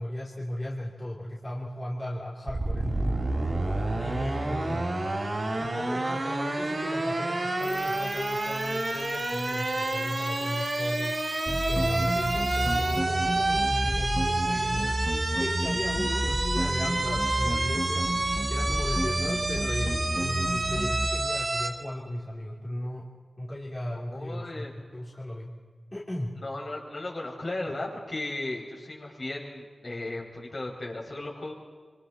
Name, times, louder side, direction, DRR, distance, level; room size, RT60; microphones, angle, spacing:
voice 1, 0.0-3.2 4.0-5.2 5.6-11.2 11.7-18.1 18.5-23.1 23.4-25.5 25.9-26.3, left 1 dB, 25° left, -5 dB, 3.2 m, -36 dB
sound 1, 2.5-21.7, right 2 dB, 50° right, 3.6 m, -29 dB
sound 2, 7.6-13.0, equal, 10° left, 3.5 m, -48 dB
sound 3, 11.5-21.1, right 1 dB, 20° right, 2.3 m, -30 dB
voice 2, 23.9-24.7 26.4-31.5, left 2 dB, 50° left, -3 dB, 6.2 m, -36 dB
26.0 x 25.0 x 4.3 m, 1.6 s
cardioid pair, 55°, 0 cm